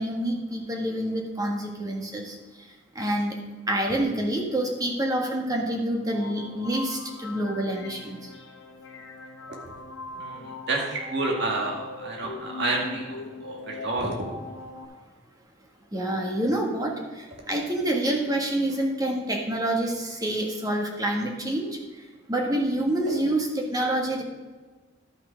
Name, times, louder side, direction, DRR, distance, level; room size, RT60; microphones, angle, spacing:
voice 1, 0.0-2.4 2.9-3.4 3.7-8.3 15.9-21.8 22.3-24.2, right 1 dB, 20° right, 0 dB, 1.5 m, -27 dB
sound 1, 6.1-14.8, left 3 dB, 90° left, 1.1 m, -40 dB
voice 2, 10.2-14.2 23.1-23.2, right 2 dB, 65° right, -1 dB, 2.2 m, -30 dB
12.0 x 5.8 x 5.0 m, 1.3 s
head